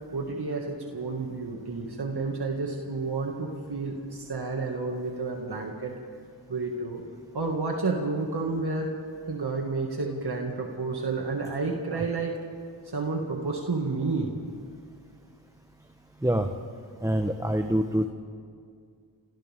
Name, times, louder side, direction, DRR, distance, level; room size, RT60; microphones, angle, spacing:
voice 1, 0.1-6.0 6.5-7.0 7.3-8.9 9.3-12.4 12.9-14.3, right 3 dB, 65° right, 0 dB, 2.3 m, -30 dB
voice 2, 17.0-18.1, right 1 dB, 10° right, 5 dB, 1.2 m, -25 dB
28.0 x 27.0 x 3.7 m, 2.2 s
cardioid pair, 55°, 43 cm